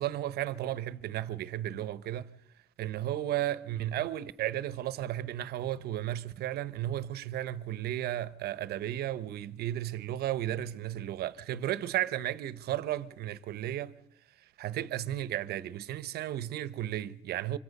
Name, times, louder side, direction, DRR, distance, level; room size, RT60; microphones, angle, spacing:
voice 1, 0.0-2.3 2.8-14.0 14.6-17.6, right 13 dB, 70° right, 1.0 m, -34 dB
25.5 x 23.0 x 5.4 m
cardioid pair, 110°, 17 cm